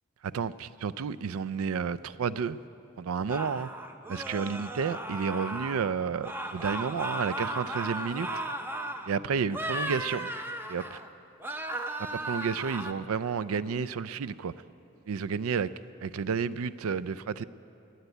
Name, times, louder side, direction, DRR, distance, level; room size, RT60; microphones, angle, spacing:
voice 1, 0.2-2.6 3.0-3.7 4.1-8.3 9.1-10.3 10.7-11.0 12.1-14.5 15.1-15.7 16.0-17.4, right 6 dB, 80° right, 17 dB, 0.4 m, -31 dB
sound 1, 3.3-5.9 6.2-9.1 9.5-11.1 11.4-12.9, right 1 dB, 10° right, 0.5 m, -36 dB
19.5 x 8.1 x 9.2 m, 2.9 s
head